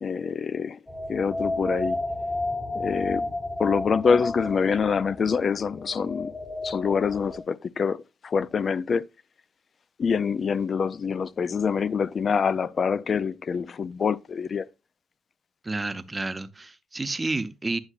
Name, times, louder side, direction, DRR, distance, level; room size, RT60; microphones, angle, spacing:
voice 1, 0.0-0.8 1.1-2.0 2.7-3.3 3.6-6.3 6.6-8.0 8.2-9.0 10.0-14.7, left 6 dB, 45° left, 0.4 m, -25 dB
sound 1, 0.9-7.4, left 1 dB, 10° left, 1.1 m, -32 dB
voice 2, 15.6-17.8, right 2 dB, 20° right, 0.7 m, -30 dB
9.8 x 7.0 x 2.4 m
cardioid pair, 90°, 0 cm